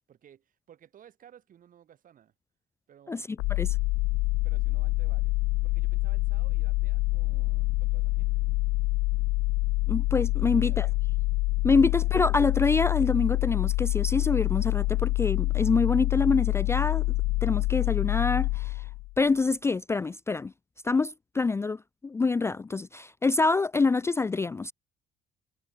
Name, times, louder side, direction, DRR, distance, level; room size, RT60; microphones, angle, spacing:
voice 1, 0.1-2.3 2.9-3.3 4.4-5.3 5.6-8.4 10.5-11.0 11.7-12.1, right 9 dB, 55° right, 7.8 m, -56 dB
sound 1, 3.4-19.2, left 22 dB, 90° left, 0.5 m, -26 dB
voice 2, 9.9-10.9 11.6-17.1 17.4-18.8 19.2-20.5 20.8-24.7, left 4 dB, 15° left, 0.4 m, -26 dB
cardioid pair, 110°, 17 cm